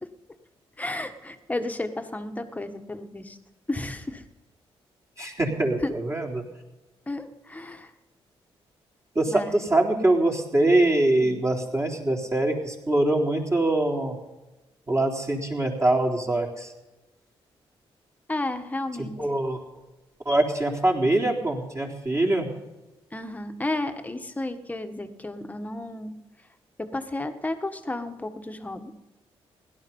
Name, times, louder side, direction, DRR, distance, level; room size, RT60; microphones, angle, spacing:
voice 1, 0.8-3.4 3.7-4.3 5.8-5.9 7.1-7.9 9.3-9.6 11.2-11.4 18.3-19.2 23.1-26.2 26.8-29.0, left 2 dB, 15° left, 7 dB, 1.5 m, -32 dB
voice 2, 5.2-6.4 9.1-14.2 14.9-16.7 19.0-19.6 20.2-22.5, right 2 dB, 30° right, -2 dB, 3.9 m, -23 dB
17.0 x 12.0 x 5.5 m, 1.0 s
cardioid pair, 85°, 10 cm